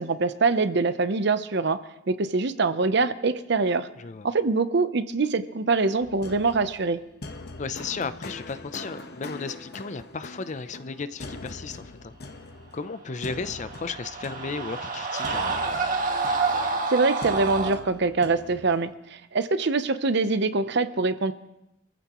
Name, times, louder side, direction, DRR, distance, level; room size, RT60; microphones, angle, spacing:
voice 1, 0.0-1.8 2.1-3.9 4.2-7.0 16.9-21.3, right 3 dB, 60° right, 12 dB, 0.7 m, -24 dB
sound 1, 6.0-18.9, left 2 dB, 55° left, 1.1 m, -42 dB
voice 2, 7.6-12.1 12.7-15.6, left 4 dB, 40° left, 13 dB, 0.5 m, -34 dB
sound 2, 13.3-17.8, right 4 dB, 45° right, 1.6 m, -28 dB
26.5 x 14.5 x 3.0 m, 0.88 s
head